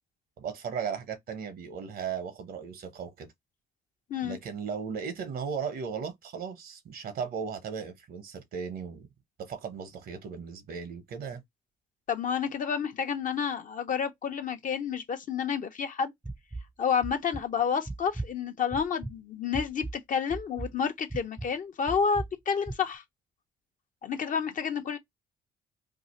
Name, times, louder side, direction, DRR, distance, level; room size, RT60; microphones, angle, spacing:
voice 1, 0.4-3.3 4.2-9.1 9.4-11.4, right 6 dB, 70° right, 0.9 m, -36 dB
voice 2, 12.1-16.1 16.8-23.0 24.0-25.0, left 6 dB, 55° left, 0.8 m, -30 dB
sound 1, 16.2-16.7 17.0-17.4 17.8-18.3 18.7-19.1 19.5-19.9 20.3-20.7 21.1-21.5 21.9-22.3 22.7-22.8, right 2 dB, 10° right, 0.5 m, -36 dB
2.7 x 2.4 x 4.1 m
supercardioid pair, 65°, 16 cm